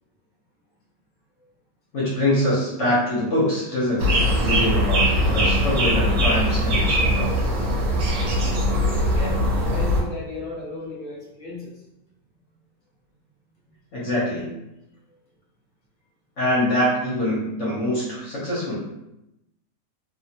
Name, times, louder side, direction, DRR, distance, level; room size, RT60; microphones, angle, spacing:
voice 1, 1.9-7.5 13.9-14.5 16.4-18.8, left 1 dB, 50° left, -7 dB, 1.0 m, -24 dB
sound 1, 4.0-10.0, equal, 65° right, 1.0 m, -21 dB
voice 2, 8.7-11.8, left 2 dB, 5° right, -9 dB, 0.4 m, -34 dB
3.0 x 2.3 x 2.8 m, 0.89 s
omnidirectional pair, 2.0 m